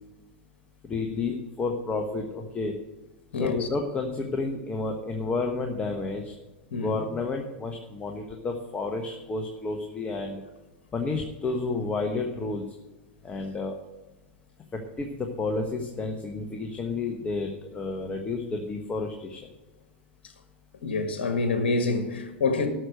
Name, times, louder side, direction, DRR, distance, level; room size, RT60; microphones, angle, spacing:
voice 1, 0.8-2.8 3.4-6.3 6.7-10.4 10.9-12.6 13.2-13.7 14.7-19.5, left 3 dB, 20° left, 1.3 m, -31 dB
voice 2, 3.3-3.7 6.7-7.0 20.8-22.7, left 3 dB, 70° left, 1.7 m, -26 dB
12.5 x 6.4 x 6.5 m
hypercardioid pair, 95°, 6 cm